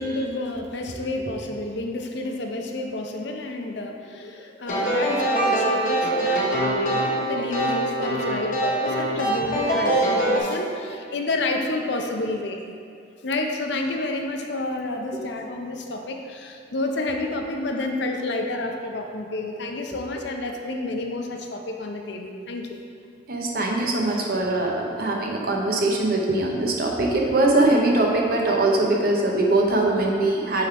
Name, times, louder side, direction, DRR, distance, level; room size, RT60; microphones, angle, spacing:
voice 1, 0.0-12.6 13.2-22.8 24.1-24.2, left 2 dB, 60° left, 3 dB, 0.6 m, -29 dB
sound 1, 4.7-10.4, right 1 dB, 45° left, 1.2 m, -23 dB
voice 2, 23.3-30.7, right 2 dB, 50° right, 0 dB, 0.8 m, -22 dB
6.9 x 3.8 x 4.6 m, 2.4 s
head